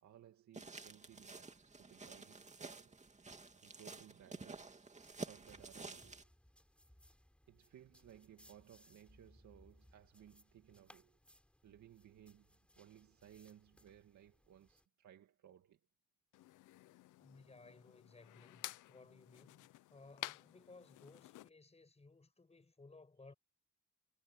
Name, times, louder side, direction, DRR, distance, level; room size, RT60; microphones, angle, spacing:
voice 1, 0.0-3.0 3.6-4.8 5.1-6.3 7.5-11.2 11.6-15.8, right 11 dB, 70° right, 2.3 m, -61 dB
Walk in snow, 0.5-6.2, right 3 dB, 25° right, 2.5 m, -51 dB
sound 1, 5.0-14.8, equal, 5° left, 7.8 m, -67 dB
sound 2, 16.3-21.5, left 16 dB, 80° left, 0.7 m, -52 dB
voice 2, 17.2-23.3, left 3 dB, 20° left, 5.9 m, -60 dB
cardioid pair, 90°, 30 cm